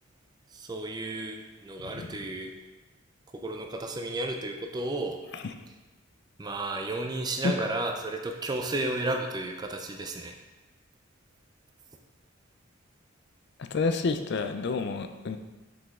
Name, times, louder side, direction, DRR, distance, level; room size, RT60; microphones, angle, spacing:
voice 1, 0.5-2.5 3.4-5.2 6.4-10.3, right 2 dB, 20° right, 3 dB, 0.4 m, -33 dB
voice 2, 13.6-15.4, left 4 dB, 55° left, 7 dB, 0.4 m, -29 dB
6.0 x 5.1 x 3.6 m, 1.2 s
head